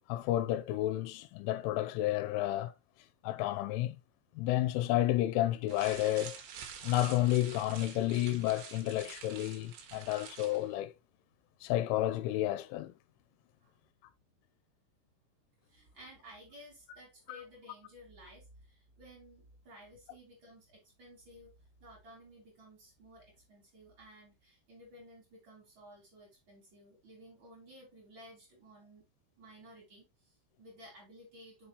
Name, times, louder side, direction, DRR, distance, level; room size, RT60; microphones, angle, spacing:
voice 1, 0.1-2.7 3.2-4.0 4.4-6.4 6.8-10.9 11.6-12.9 17.3-17.4, left 14 dB, 85° left, 3.0 m, -31 dB
sound 1, 5.7-10.7, right 7 dB, 70° right, 2.9 m, -48 dB
voice 2, 15.6-21.5 21.8-29.0 29.4-31.7, equal, 35° right, 2.4 m, -55 dB
6.5 x 5.9 x 3.0 m
omnidirectional pair, 5.7 m